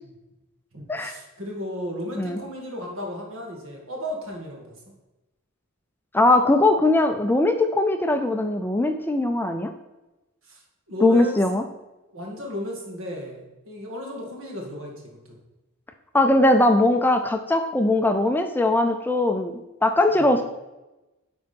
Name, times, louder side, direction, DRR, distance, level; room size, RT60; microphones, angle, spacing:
voice 1, 0.7-4.7 10.4-10.6 10.9-11.6 12.1-14.9 15.3-15.4 20.1-20.3, equal, 65° right, 0 dB, 2.0 m, -35 dB
voice 2, 6.1-9.7 11.0-11.6 16.1-20.4, left 2 dB, 10° left, 6 dB, 0.4 m, -20 dB
9.8 x 3.9 x 5.2 m, 1.0 s
head